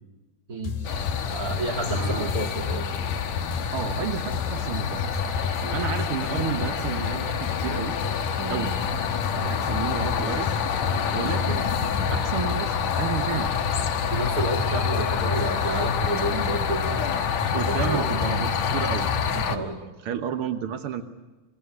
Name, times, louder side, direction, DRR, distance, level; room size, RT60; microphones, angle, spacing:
sound 1, 0.6-19.4, left 6 dB, 80° left, 4.0 m, -33 dB
sound 2, 0.8-19.6, left 6 dB, 60° left, 2.2 m, -27 dB
voice 1, 1.3-2.9 5.6-5.8 8.4-8.6 9.4-9.5 14.1-17.3 17.7-18.0 19.4-19.8, right 2 dB, 25° right, 2 dB, 2.6 m, -30 dB
voice 2, 1.9-2.3 3.7-5.0 5.7-7.9 8.5-8.7 9.3-10.6 11.1-11.7 11.9-13.5 17.5-21.0, right 8 dB, 80° right, 7 dB, 1.2 m, -31 dB
24.5 x 21.5 x 9.6 m, 1.2 s
omnidirectional pair, 4.3 m